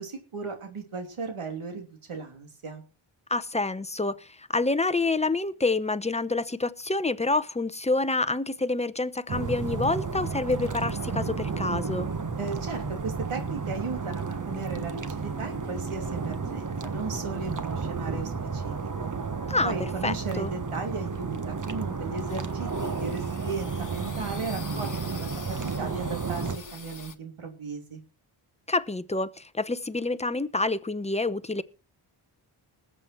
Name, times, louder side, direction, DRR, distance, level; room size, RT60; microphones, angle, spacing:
voice 1, 0.0-2.8 12.4-18.7 19.0-19.1 19.6-25.3 25.8-26.5 26.7-28.0, right 4 dB, 80° right, 3.3 m, -36 dB
voice 2, 3.3-12.1 19.5-19.7 20.0-20.5 28.7-31.6, left 3 dB, 15° left, 0.8 m, -27 dB
sound 1, 9.3-26.6, right 4 dB, 35° right, 1.3 m, -32 dB
sound 2, 22.1-27.1, left 5 dB, 40° left, 1.3 m, -45 dB
20.0 x 7.8 x 4.5 m
cardioid pair, 70°, 50 cm